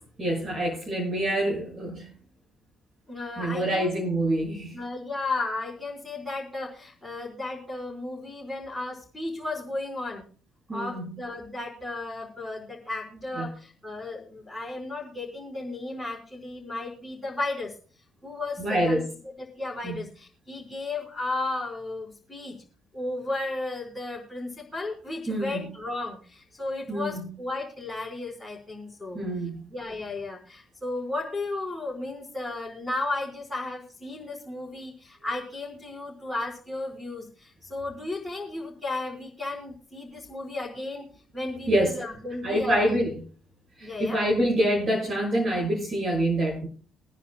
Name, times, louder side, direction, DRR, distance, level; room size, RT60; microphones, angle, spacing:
voice 1, 0.2-2.1 3.4-4.8 10.7-11.1 13.3-13.5 18.6-19.0 19.8-19.9 25.3-25.6 26.9-27.2 29.1-29.6 41.7-41.9 42.4-43.1 43.8-46.7, right 1 dB, 40° right, -3 dB, 6.6 m, -26 dB
voice 2, 3.1-4.1 4.7-10.2 10.7-17.7 18.2-19.0 19.4-22.6 22.9-29.2 29.7-41.1 41.3-43.0 43.8-44.2, left 2 dB, ahead, -4 dB, 4.6 m, -34 dB
25.0 x 10.0 x 2.2 m, 0.40 s
figure-of-eight pair, 45°, 0 cm